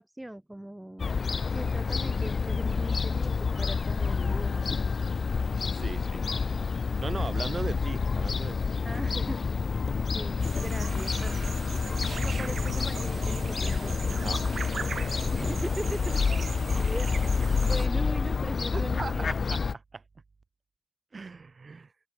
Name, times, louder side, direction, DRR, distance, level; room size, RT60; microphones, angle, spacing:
voice 1, 0.0-4.7 8.8-9.6 10.0-11.4 12.1-14.2 15.3-16.2 16.7-19.3, right 1 dB, 10° right, 1.8 m, -39 dB
Fowl / Gull seagull, 1.0-19.7, left 5 dB, 65° left, 0.5 m, -28 dB
voice 2, 5.7-8.8 14.2-14.4 18.7-20.0 21.1-21.9, right 4 dB, 50° right, 5.8 m, -39 dB
sound 1, 10.4-17.9, right 5 dB, 70° right, 3.8 m, -40 dB
open air
wide cardioid pair, 110°, 0 cm